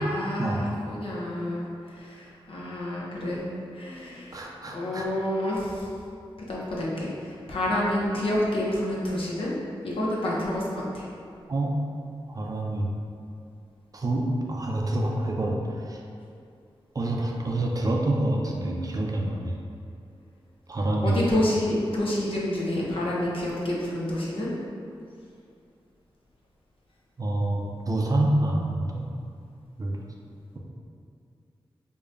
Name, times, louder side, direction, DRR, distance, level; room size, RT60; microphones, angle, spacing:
voice 1, 0.0-1.6 1.9-3.4 3.7-4.4 4.7-5.9 6.5-9.5 9.8-11.1 21.0-24.5, left 1 dB, 70° left, -5 dB, 0.7 m, -28 dB
voice 2, 4.3-5.1 11.5-11.7 12.3-12.9 13.9-16.0 16.9-19.6 20.7-21.3 27.2-29.0 29.8-30.0, right 1 dB, 40° right, -1 dB, 0.5 m, -27 dB
4.9 x 2.2 x 2.5 m, 2.5 s
wide cardioid pair, 65°, 10 cm